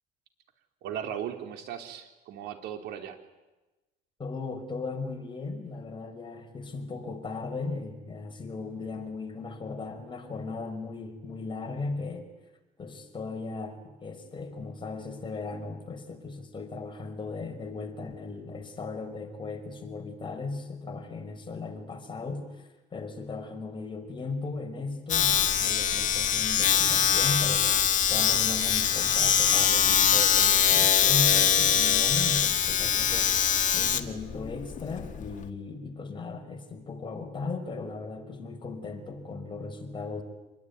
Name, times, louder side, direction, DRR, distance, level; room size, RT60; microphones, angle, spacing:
voice 1, 0.8-3.2, right 9 dB, 85° right, 5 dB, 3.6 m, -37 dB
voice 2, 4.2-12.3 12.8-33.4 33.7-40.2, left 3 dB, 30° left, 4 dB, 5.1 m, -37 dB
Domestic sounds home sounds, 25.1-35.5, left 9 dB, 50° left, 1.9 m, -23 dB
26.5 x 21.0 x 9.6 m, 1.1 s
cardioid pair, 110°, 17 cm